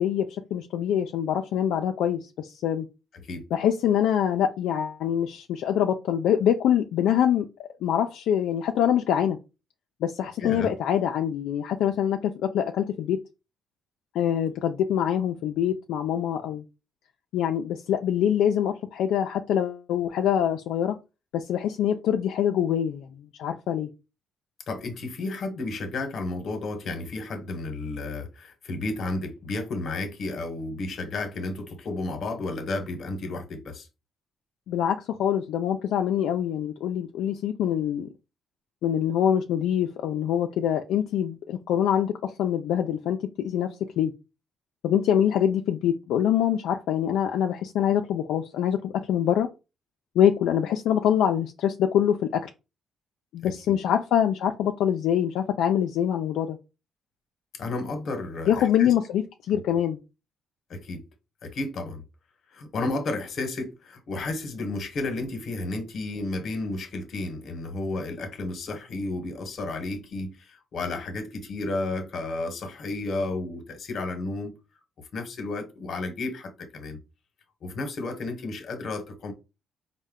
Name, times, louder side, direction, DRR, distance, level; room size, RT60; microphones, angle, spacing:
voice 1, 0.0-2.9 3.5-7.5 7.8-9.4 10.0-13.2 14.1-16.6 17.3-21.0 21.3-23.9 34.7-38.1 38.8-44.1 44.8-49.5 50.2-52.5 53.3-56.6 58.5-60.0, left 9 dB, 85° left, 0.3 m, -24 dB
voice 2, 10.4-10.7 24.7-33.9 53.4-53.8 57.6-58.9 60.7-61.0 61.4-62.0 62.5-74.6 75.1-77.0 77.6-79.3, left 2 dB, 60° left, 0.9 m, -32 dB
4.1 x 2.1 x 3.6 m
cardioid pair, 90°, 0 cm